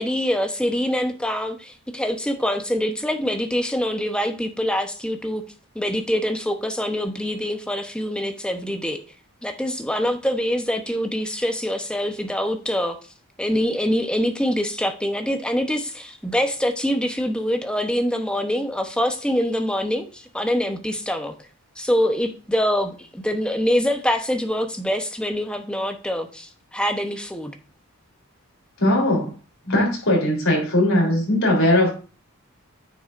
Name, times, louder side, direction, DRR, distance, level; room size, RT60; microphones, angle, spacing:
voice 1, 0.0-5.4 5.7-9.0 9.4-13.0 13.4-21.3 21.8-27.5, equal, 5° left, 0.8 m, -24 dB
voice 2, 28.8-29.3 29.7-31.9, left 1 dB, 65° left, 3.5 m, -19 dB
9.2 x 6.9 x 2.5 m
head